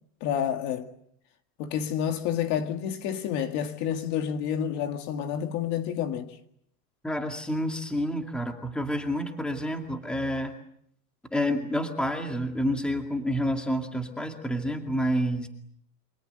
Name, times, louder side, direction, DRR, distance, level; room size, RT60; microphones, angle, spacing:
voice 1, 0.2-0.9 1.6-6.4, left 9 dB, 35° left, 2.1 m, -29 dB
voice 2, 7.0-10.5 11.3-15.5, equal, ahead, 2.3 m, -29 dB
28.5 x 25.5 x 7.9 m
supercardioid pair, 165°, 47 cm